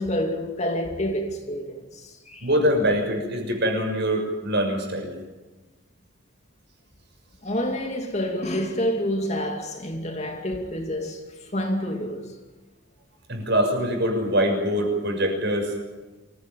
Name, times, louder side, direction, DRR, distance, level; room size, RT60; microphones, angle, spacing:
voice 1, 0.0-2.5 7.4-12.3, equal, 30° left, 2.5 m, -28 dB
voice 2, 2.4-5.1 13.3-15.7, equal, 55° right, 6.5 m, -23 dB
25.5 x 16.5 x 9.2 m
head